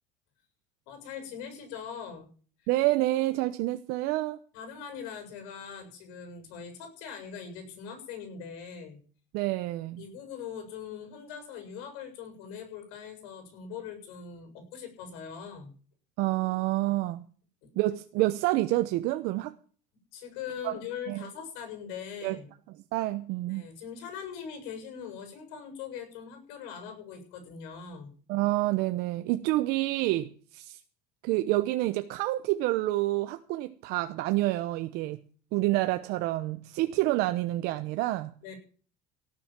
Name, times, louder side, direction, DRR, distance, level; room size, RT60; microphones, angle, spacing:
voice 1, 0.9-2.3 2.6-2.7 4.5-9.0 10.0-15.7 17.6-17.7 20.1-22.5 23.4-28.1 38.4-38.5, left 7 dB, 80° left, 7 dB, 7.4 m, -41 dB
voice 2, 2.7-4.4 9.3-10.0 16.2-17.2 17.8-19.5 20.6-20.7 21.1-21.2 22.2-22.4 22.9-23.6 28.3-30.8 31.2-35.2 35.5-38.3, right 17 dB, 60° right, 10 dB, 0.9 m, -28 dB
17.5 x 7.7 x 7.5 m, 0.42 s
cardioid pair, 165°, 18 cm